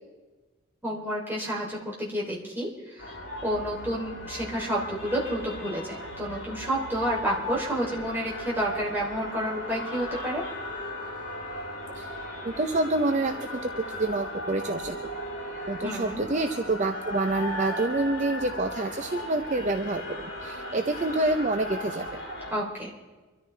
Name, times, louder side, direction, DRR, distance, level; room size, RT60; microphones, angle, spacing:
voice 1, 0.8-3.1 3.4-10.4 15.8-16.2 22.5-22.9, equal, 10° right, -4 dB, 3.1 m, -30 dB
sound 1, 3.0-22.6, equal, 60° left, 5.5 m, -37 dB
voice 2, 12.4-15.0 15.7-22.2, right 2 dB, 35° right, 6 dB, 0.6 m, -27 dB
24.5 x 13.0 x 3.3 m, 1.3 s
head